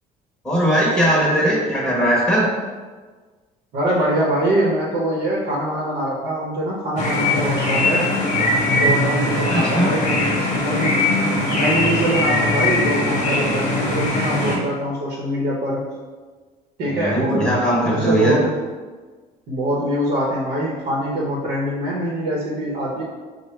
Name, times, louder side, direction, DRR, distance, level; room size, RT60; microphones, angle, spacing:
voice 1, 0.4-2.5 9.2-9.9 16.8-18.4, right 1 dB, 5° left, -6 dB, 1.0 m, -19 dB
voice 2, 3.7-8.1 8.8-11.0 11.5-15.8 16.8-17.5 17.9-18.5 19.5-23.0, right 1 dB, 70° right, -5 dB, 0.9 m, -23 dB
sound 1, 7.0-14.6, left 2 dB, 45° left, 0.9 m, -20 dB
4.6 x 2.2 x 3.2 m, 1.4 s
cardioid pair, 110°, 17 cm